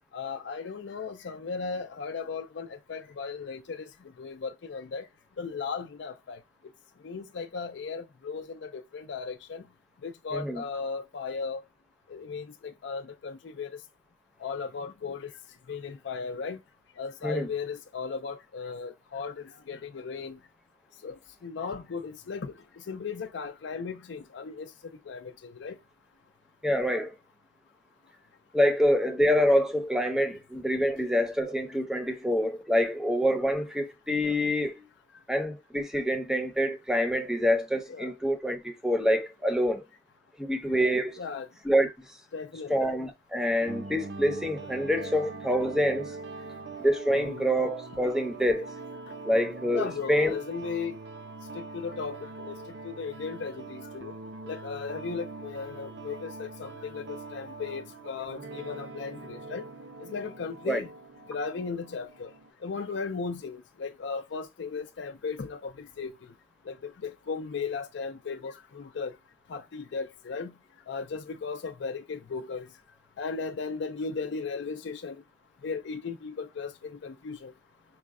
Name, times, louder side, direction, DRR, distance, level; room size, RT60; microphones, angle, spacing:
voice 1, 0.1-3.9 4.2-5.1 5.4-6.4 7.0-9.6 10.0-11.6 12.1-13.8 14.4-15.3 15.7-16.6 17.0-20.4 21.0-25.8 37.9-38.1 41.2-41.5 42.3-42.9 47.1-47.4 49.1-49.2 49.7-51.0 51.5-52.6 52.8-54.2 54.4-59.7 60.0-60.9 61.3-62.3 62.6-66.2 66.7-69.2 69.5-70.5 70.9-72.7 73.2-75.2 75.6-77.5, left 5 dB, 85° left, 0.4 m, -36 dB
voice 2, 10.3-10.6 17.2-17.5 26.6-27.1 28.5-34.8 35.3-39.8 40.4-41.2 41.6-42.1 42.7-46.2 46.8-48.7 49.2-50.4 60.7-60.8, equal, 5° right, 0.6 m, -26 dB
sound 1, 43.6-62.5, right 3 dB, 70° right, 0.6 m, -43 dB
4.9 x 2.2 x 3.6 m
head